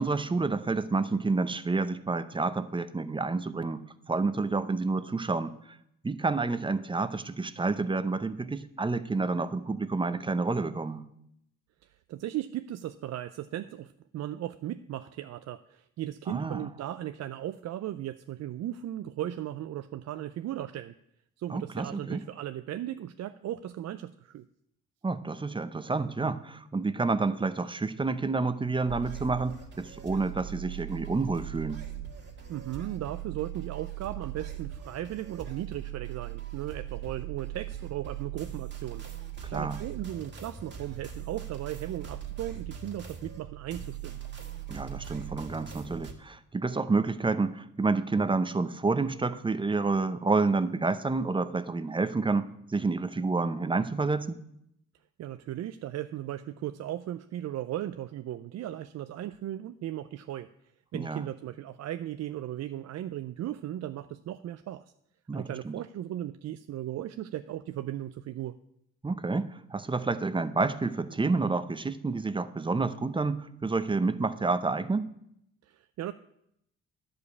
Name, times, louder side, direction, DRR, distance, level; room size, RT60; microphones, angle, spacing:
voice 1, 0.0-5.8 6.0-11.0 16.3-16.7 21.5-22.2 25.0-31.8 39.5-39.8 44.7-54.4 60.9-61.2 65.3-65.8 69.0-75.1, right 3 dB, 15° right, 12 dB, 0.7 m, -29 dB
voice 2, 11.8-20.9 21.4-24.4 32.5-39.0 39.5-44.2 55.2-60.5 60.9-64.9 65.3-68.6 75.6-76.1, right 12 dB, 60° right, 10 dB, 0.5 m, -37 dB
sound 1, 28.9-46.1, right 11 dB, 35° right, 2.0 m, -40 dB
11.0 x 5.2 x 8.2 m, 0.76 s
cardioid pair, 90°, 30 cm